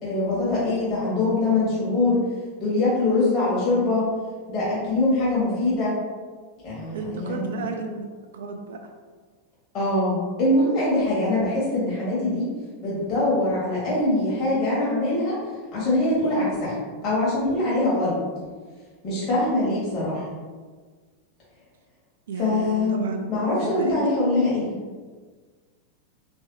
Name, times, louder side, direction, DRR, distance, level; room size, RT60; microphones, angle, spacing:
voice 1, 0.0-2.2 2.6-4.1 4.5-6.0 6.6-7.5 9.7-12.5 12.8-15.3 15.7-16.7 17.0-18.2 19.0-20.3 22.4-23.0 23.3-24.7, left 2 dB, 35° left, -8 dB, 1.4 m, -23 dB
voice 2, 6.9-8.1 8.3-8.9 22.3-23.3 23.6-24.0, right 4 dB, 60° right, 4 dB, 0.4 m, -33 dB
3.4 x 3.2 x 2.9 m, 1.5 s
figure-of-eight pair, 90°, 0 cm